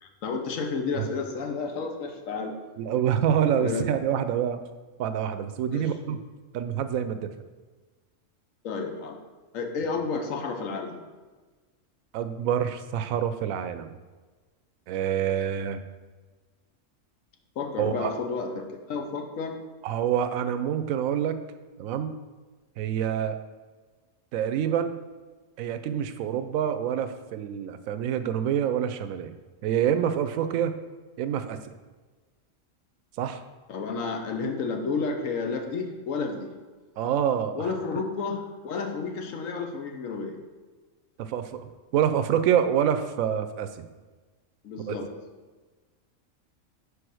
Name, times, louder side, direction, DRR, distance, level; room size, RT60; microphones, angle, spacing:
voice 1, 0.0-2.5 3.6-3.8 5.7-5.9 8.6-9.2 9.5-11.0 17.6-19.6 33.7-36.5 37.5-40.4 44.6-45.1, left 4 dB, 75° left, 4 dB, 1.2 m, -31 dB
voice 2, 2.8-4.6 5.0-6.2 6.5-7.3 12.1-14.0 14.9-15.8 17.8-18.1 19.8-21.4 21.8-22.2 22.8-23.4 24.3-25.0 25.6-29.3 29.6-30.8 31.2-31.6 33.2-33.4 37.0-37.7 41.2-43.9 44.9-45.0, right 9 dB, 80° right, 10 dB, 1.0 m, -27 dB
4.9 x 4.9 x 6.2 m, 1.3 s
omnidirectional pair, 1.4 m